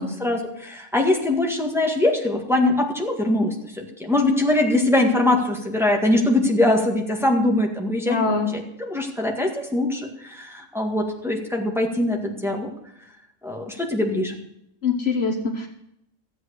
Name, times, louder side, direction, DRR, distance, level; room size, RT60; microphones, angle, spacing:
voice 1, 0.0-12.7 13.4-14.3, left 1 dB, ahead, 0 dB, 1.8 m, -22 dB
voice 2, 8.1-8.5 14.8-15.7, left 4 dB, 55° left, 5 dB, 1.3 m, -23 dB
14.0 x 8.0 x 6.6 m, 0.78 s
omnidirectional pair, 1.3 m